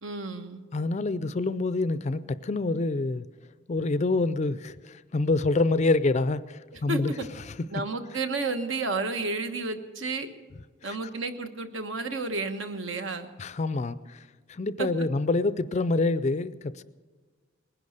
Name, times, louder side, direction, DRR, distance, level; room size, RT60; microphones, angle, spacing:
voice 1, 0.0-0.6 6.9-7.2 7.7-10.3 10.8-13.3 14.8-14.9, right 3 dB, 70° right, 1.3 m, -31 dB
voice 2, 0.7-3.2 3.7-7.1 7.5-7.6 10.8-11.0 13.4-16.8, left 3 dB, 35° left, 0.4 m, -27 dB
20.0 x 11.0 x 6.6 m
head